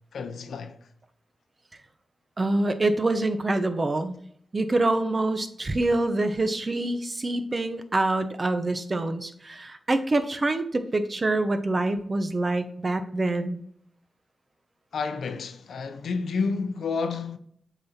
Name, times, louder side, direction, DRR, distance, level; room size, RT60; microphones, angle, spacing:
voice 1, 0.1-0.8 14.9-17.4, left 4 dB, 85° left, 0.6 m, -30 dB
voice 2, 2.4-4.2 4.5-13.6, right 2 dB, 45° right, 0.8 m, -26 dB
7.5 x 4.1 x 4.3 m
cardioid pair, 45°, 0 cm